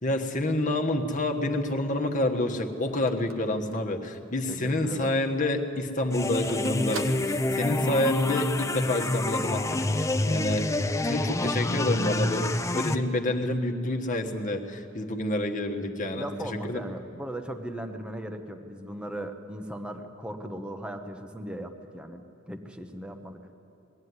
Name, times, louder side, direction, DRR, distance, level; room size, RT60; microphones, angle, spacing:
voice 1, 0.0-10.7 11.0-16.8, left 1 dB, 40° left, 3 dB, 1.4 m, -28 dB
Telephone, 1.0-4.4 4.8-4.9 5.1-8.0, right 4 dB, 80° right, 1.3 m, -44 dB
voice 2, 4.5-5.2 16.1-23.4, right 1 dB, 5° right, 5 dB, 0.9 m, -38 dB
sound 1, 6.1-12.9, left 2 dB, 15° left, 0.7 m, -27 dB
21.0 x 14.5 x 9.6 m, 2.9 s
head